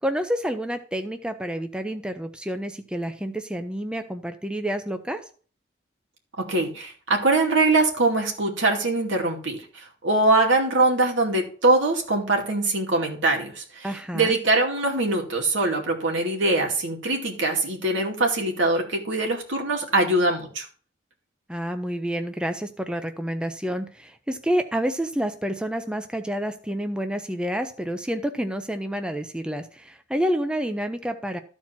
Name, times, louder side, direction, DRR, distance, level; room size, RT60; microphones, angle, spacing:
voice 1, 0.0-5.2 13.8-14.4 21.5-31.4, equal, 5° right, 8 dB, 0.5 m, -29 dB
voice 2, 6.4-13.9 14.1-20.6, right 2 dB, 85° right, 1 dB, 2.5 m, -23 dB
13.0 x 4.5 x 5.9 m, 0.42 s
head